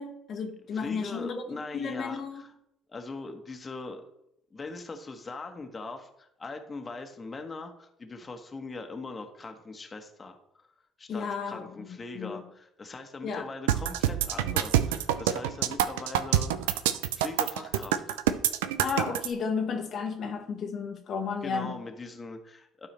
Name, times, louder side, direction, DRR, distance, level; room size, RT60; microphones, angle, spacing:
voice 1, 0.0-1.4 1.7-2.4 11.1-11.6 12.1-12.4 13.2-13.5 18.8-21.7, left 5 dB, 55° left, 2 dB, 1.1 m, -33 dB
voice 2, 0.7-2.5 2.9-4.0 4.5-10.7 11.0-16.8 17.1-18.2 21.4-22.9, left 3 dB, 30° left, 5 dB, 1.3 m, -41 dB
sound 1, 13.7-19.3, right 11 dB, 80° right, 0.4 m, -26 dB
12.0 x 4.7 x 3.3 m, 0.78 s
hypercardioid pair, 55°, 0 cm